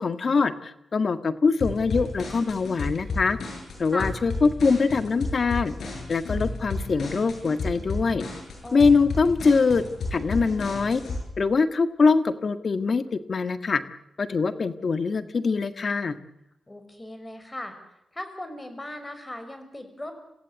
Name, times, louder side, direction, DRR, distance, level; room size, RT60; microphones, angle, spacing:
voice 1, 0.0-3.4 3.8-5.7 6.1-8.2 8.7-9.8 10.1-11.0 11.4-13.8 14.2-16.2, left 4 dB, 55° left, 11 dB, 1.7 m, -23 dB
sound 1, 1.6-11.2, left 3 dB, 80° left, 8.0 m, -32 dB
voice 2, 8.6-9.1 16.7-17.8 18.1-20.1, left 1 dB, 20° left, 8 dB, 5.9 m, -38 dB
27.0 x 15.5 x 8.3 m, 0.84 s
cardioid pair, 60°, 0 cm